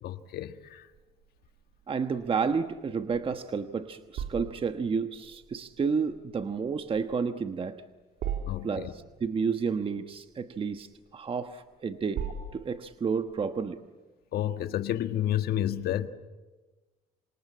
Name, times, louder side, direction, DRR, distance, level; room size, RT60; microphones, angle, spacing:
voice 1, 0.0-0.9 8.5-8.9 14.3-16.1, left 12 dB, 65° left, 1.6 m, -30 dB
sound 1, 0.9-13.6, right 6 dB, 70° right, 3.0 m, -42 dB
voice 2, 1.9-7.8 8.6-12.2 12.5-13.8, right 5 dB, 30° right, 1.2 m, -31 dB
27.5 x 25.0 x 8.6 m
cardioid pair, 110°, 17 cm